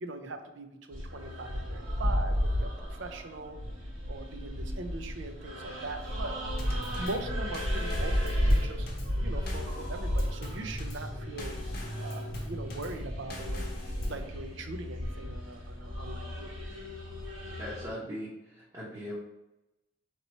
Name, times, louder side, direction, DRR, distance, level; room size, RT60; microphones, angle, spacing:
voice 1, 0.0-3.6 4.1-6.4 6.7-8.9 9.2-11.5 12.0-13.7 14.0-16.5, right 2 dB, 65° right, 6 dB, 0.6 m, -41 dB
sound 1, 0.9-17.9, equal, 85° right, 1.5 m, -33 dB
Drum kit / Snare drum / Bass drum, 6.6-14.3, left 2 dB, 50° left, 0.8 m, -44 dB
voice 2, 17.6-19.2, equal, 20° right, -8 dB, 0.8 m, -40 dB
4.1 x 3.0 x 4.2 m, 0.95 s
head